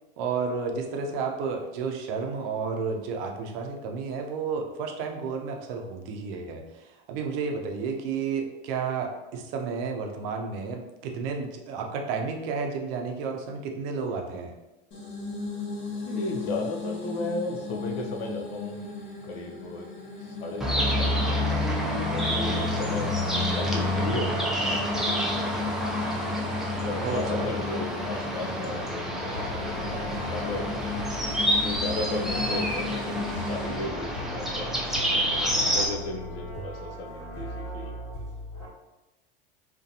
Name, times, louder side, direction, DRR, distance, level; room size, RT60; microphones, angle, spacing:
voice 1, 0.2-14.5 27.0-27.5, right 5 dB, 70° right, 3 dB, 0.6 m, -32 dB
sound 1, 14.9-33.8, left 4 dB, 40° left, 0.9 m, -36 dB
voice 2, 16.0-18.9 19.2-19.9 20.2-21.7 22.0-23.1 23.5-26.4 26.8-30.0 30.3-30.7 31.6-34.7 35.4-38.2, left 2 dB, 75° left, 0 dB, 0.6 m, -35 dB
sound 2, 20.6-35.9, equal, ahead, 0.3 m, -28 dB
Sleazy Trombone intro, 29.2-38.7, left 1 dB, 55° left, 1.2 m, -37 dB
2.5 x 2.2 x 2.7 m, 1.0 s
hypercardioid pair, 95°, 30 cm